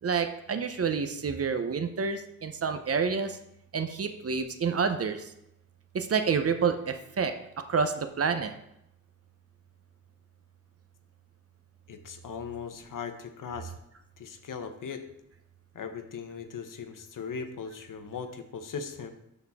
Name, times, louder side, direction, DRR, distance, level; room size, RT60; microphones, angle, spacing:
voice 1, 0.0-3.4 3.7-5.3 5.9-8.5, right 5 dB, 45° right, 8 dB, 0.7 m, -28 dB
voice 2, 11.9-13.7 14.2-15.0 15.7-19.1, left 6 dB, 70° left, 7 dB, 1.0 m, -39 dB
12.5 x 4.3 x 3.6 m, 0.80 s
wide cardioid pair, 115°, 33 cm